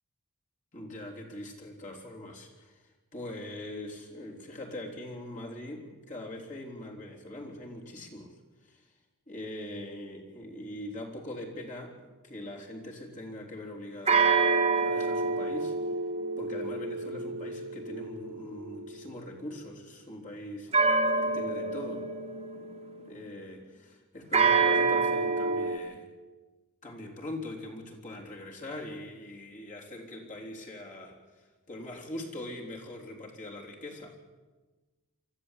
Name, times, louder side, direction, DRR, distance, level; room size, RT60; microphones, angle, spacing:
voice 1, 0.7-8.9 9.3-14.5 14.8-15.8 16.4-20.7 21.2-22.1 23.0-26.0 26.8-34.2, left 1 dB, 35° left, -1 dB, 3.6 m, -42 dB
sound 1, 14.1-18.9 20.7-23.1 24.3-25.8, right 4 dB, 25° right, 1.8 m, -27 dB
24.0 x 14.5 x 8.3 m, 1.2 s
head